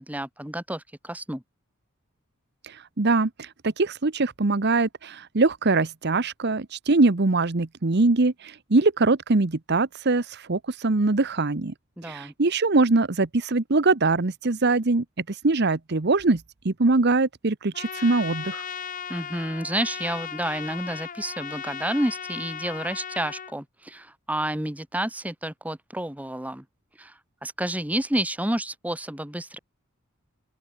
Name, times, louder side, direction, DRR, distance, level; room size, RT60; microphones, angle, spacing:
voice 1, 0.0-1.4 12.0-12.3 19.1-26.6 27.0-27.1 27.4-29.6, right 1 dB, 5° right, 1.5 m, -30 dB
voice 2, 2.6-11.7 12.0-18.6, right 3 dB, 50° right, 0.9 m, -23 dB
Trumpet, 17.7-23.5, left 7 dB, 40° left, 0.9 m, -36 dB
open air
head